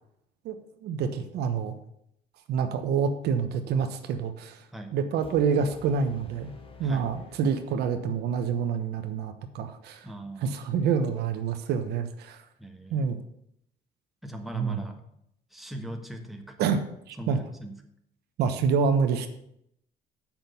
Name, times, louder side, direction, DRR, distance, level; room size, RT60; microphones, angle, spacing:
voice 1, 0.8-1.7 2.5-4.6 4.9-6.5 6.8-10.1 10.4-12.4 12.9-13.2 14.5-14.9 16.6-16.8 17.1-17.4 18.4-19.3, right 6 dB, 75° right, 8 dB, 1.1 m, -27 dB
sound 1, 5.2-8.2, left 4 dB, 30° left, 1.3 m, -50 dB
voice 2, 10.0-10.6 12.6-13.3 14.2-15.0 15.5-16.6 17.2-17.8, right 1 dB, ahead, 3 dB, 1.3 m, -40 dB
7.5 x 6.0 x 7.0 m, 0.74 s
cardioid pair, 110°, 17 cm